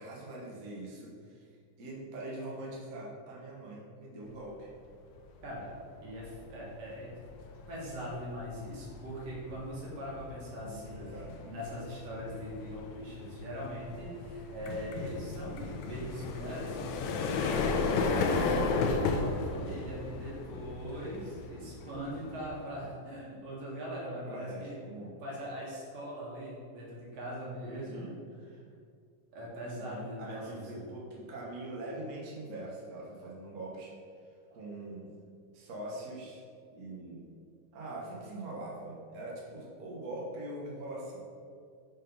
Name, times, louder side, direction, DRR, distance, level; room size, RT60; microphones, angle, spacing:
voice 1, 0.0-1.4 1.8-4.7 10.6-11.4 24.3-25.1 27.6-28.2 29.6-33.9 34.5-35.1 35.5-36.4 36.7-37.3 37.7-41.2, right 1 dB, 85° right, -4 dB, 0.7 m, -43 dB
sound 1, 5.3-5.6 6.0-22.8, left 4 dB, 80° left, 1.7 m, -35 dB
voice 2, 6.0-7.1 7.7-11.1 11.4-17.8 18.0-24.8 25.2-28.1 28.5-28.6 29.3-31.0, equal, 55° right, -5 dB, 2.6 m, -41 dB
6.1 x 4.5 x 5.3 m, 2.3 s
omnidirectional pair, 3.6 m